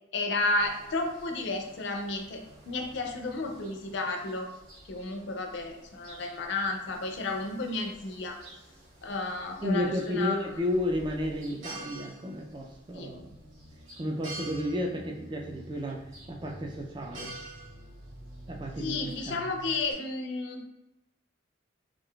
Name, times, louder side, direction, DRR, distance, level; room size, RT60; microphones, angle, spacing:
voice 1, 0.1-4.5 4.9-8.4 9.0-10.5 12.9-13.1 18.8-20.7, left 2 dB, 60° left, 3 dB, 0.4 m, -32 dB
sound 1, 0.6-19.9, right 1 dB, 80° right, 1.1 m, -49 dB
voice 2, 9.6-13.3 14.0-16.0 16.3-17.4 18.5-19.5, left 1 dB, 25° right, 0 dB, 0.3 m, -32 dB
sound 2, 13.1-19.7, right 1 dB, 60° right, 0.6 m, -51 dB
3.6 x 2.4 x 2.3 m, 0.98 s
head